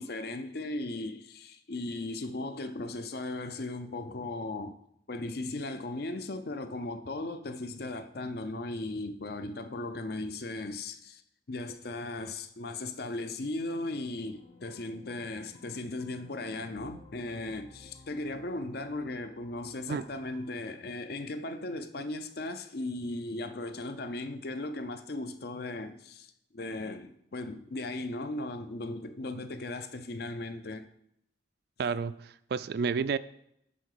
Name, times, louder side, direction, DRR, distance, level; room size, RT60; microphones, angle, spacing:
voice 1, 0.0-4.8 5.1-11.2 11.5-30.9, left 2 dB, 55° left, 0.6 m, -37 dB
sound 1, 14.3-20.4, left 3 dB, 30° left, 1.3 m, -56 dB
voice 2, 31.8-33.2, right 5 dB, 55° right, 0.3 m, -30 dB
8.6 x 3.8 x 6.5 m
head